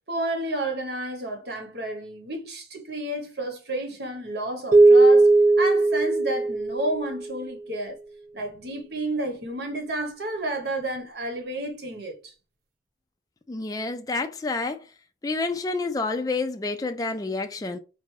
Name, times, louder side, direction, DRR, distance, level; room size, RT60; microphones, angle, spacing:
voice 1, 0.1-5.3 5.6-8.0 8.3-12.3, right 1 dB, 65° right, 1.0 m, -31 dB
sound 1, 4.7-7.3, right 3 dB, 45° right, 0.5 m, -17 dB
voice 2, 13.5-14.9 15.2-17.8, left 3 dB, 20° left, 0.3 m, -29 dB
4.4 x 2.5 x 3.2 m
head